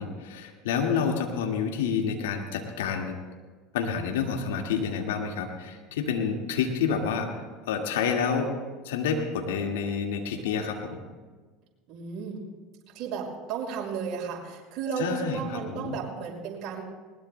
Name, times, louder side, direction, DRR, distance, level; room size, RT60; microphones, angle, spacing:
voice 1, 0.0-3.1 3.7-7.3 7.7-8.5 8.8-11.0 15.0-15.4 15.7-16.0, left 6 dB, 75° left, 3 dB, 1.9 m, -28 dB
voice 2, 11.9-12.4 12.9-16.8, right 6 dB, 55° right, -2 dB, 5.4 m, -33 dB
20.5 x 20.0 x 2.2 m, 1.4 s
hypercardioid pair, 80°, 0 cm